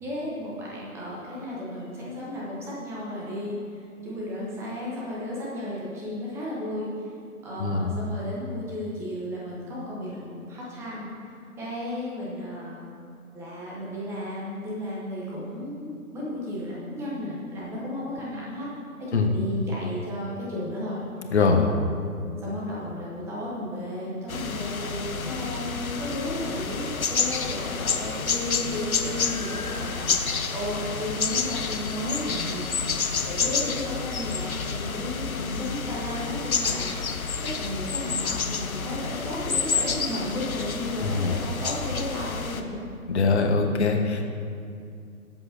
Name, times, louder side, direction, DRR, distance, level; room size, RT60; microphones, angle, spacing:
voice 1, 0.0-6.9 7.4-11.1 11.6-12.8 13.3-18.7 19.0-21.0 21.6-21.8 22.4-33.0 33.2-42.8, left 1 dB, 5° right, -6 dB, 1.1 m, -34 dB
voice 2, 7.6-7.9 19.1-19.3 21.3-21.7 41.0-41.4 43.1-44.2, left 4 dB, 50° left, 3 dB, 1.3 m, -22 dB
sound 1, 24.3-42.6, left 5 dB, 70° left, 1.0 m, -29 dB
21.5 x 7.8 x 2.8 m, 2.4 s
figure-of-eight pair, 140°, 44 cm